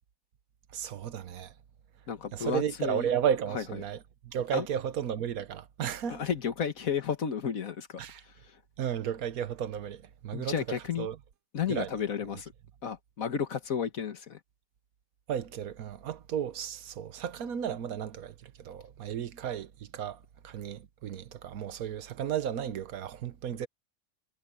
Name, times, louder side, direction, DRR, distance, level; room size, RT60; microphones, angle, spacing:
voice 1, 0.7-1.5 2.3-6.2 8.0-8.2 8.8-11.2 11.7-11.9 15.3-23.7, right 9 dB, 85° right, 1.4 m, -34 dB
voice 2, 2.1-3.1 3.5-3.6 4.5-4.7 6.1-8.6 10.3-11.1 11.5-12.5 12.8-14.4, left 7 dB, 75° left, 1.8 m, -33 dB
omnidirectional pair, 1.5 m